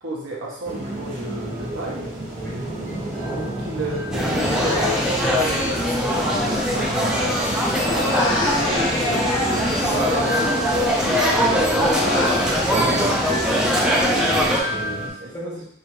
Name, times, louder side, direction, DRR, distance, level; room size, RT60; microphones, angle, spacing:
voice 1, 0.0-2.1 3.3-12.1 12.7-13.0 15.2-15.3, right 2 dB, 75° right, -3 dB, 1.0 m, -32 dB
sound 1, 0.6-15.1, equal, 40° right, 1.3 m, -30 dB
voice 2, 2.4-2.7 8.2-8.4 12.7-13.2 13.5-15.7, right 1 dB, 15° left, -6 dB, 1.0 m, -36 dB
sound 2, 4.1-14.6, equal, 5° right, 0.4 m, -21 dB
Human voice, 4.5-7.2 7.4-10.9 11.3-12.4, left 2 dB, 80° left, 0.8 m, -29 dB
4.9 x 2.6 x 2.9 m, 0.72 s
head